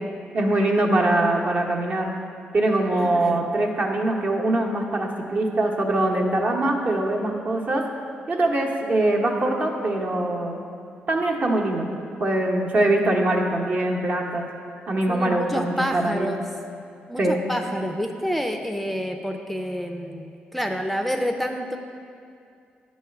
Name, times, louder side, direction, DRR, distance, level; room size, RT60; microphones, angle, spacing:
voice 1, 0.3-2.1 2.5-7.8 8.3-10.6 11.1-11.9 12.2-14.5 14.9-16.3 17.2-17.4, right 1 dB, 50° right, 0 dB, 0.9 m, -23 dB
voice 2, 2.9-3.4 15.1-16.4 17.1-21.8, equal, 5° left, 4 dB, 0.4 m, -28 dB
9.0 x 3.2 x 5.8 m, 2.5 s
cardioid pair, 85°, 4 cm